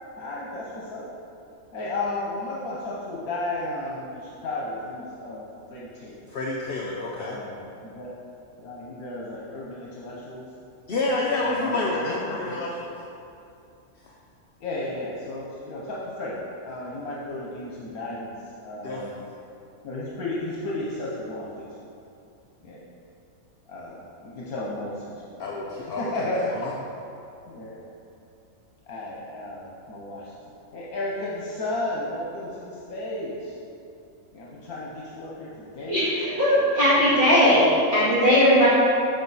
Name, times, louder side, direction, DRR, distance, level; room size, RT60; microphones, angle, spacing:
voice 1, 0.2-1.0 1.7-5.4 5.7-6.2 7.2-8.1 8.6-10.4 11.4-12.6 14.6-16.4 16.6-18.3 18.6-19.1 19.8-21.7 22.6-22.8 23.7-25.1 26.0-26.5 27.5-27.8 28.9-30.3 30.7-33.5 34.3-36.6, left 2 dB, 75° left, -5 dB, 1.4 m, -33 dB
voice 2, 6.3-7.4 10.9-12.9 14.1-14.2 18.8-19.2 25.4-26.1 26.4-26.7, left 2 dB, 55° left, -3 dB, 0.7 m, -29 dB
voice 3, 35.9-38.7, equal, 40° right, -11 dB, 2.1 m, -19 dB
6.7 x 6.7 x 4.0 m, 2.6 s
omnidirectional pair, 1.5 m